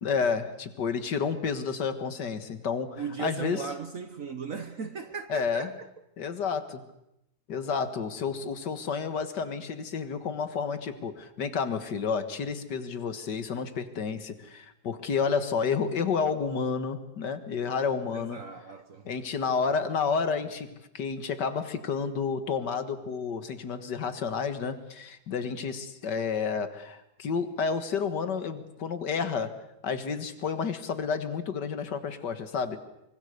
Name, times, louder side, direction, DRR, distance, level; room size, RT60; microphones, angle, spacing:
voice 1, 0.0-3.6 5.3-5.7 6.2-6.8 7.5-18.4 19.1-29.5 29.8-32.8, left 5 dB, 65° left, 2.1 m, -30 dB
voice 2, 3.0-5.9 18.1-19.1, right 6 dB, 50° right, 1.3 m, -37 dB
24.5 x 24.5 x 6.7 m
omnidirectional pair, 2.0 m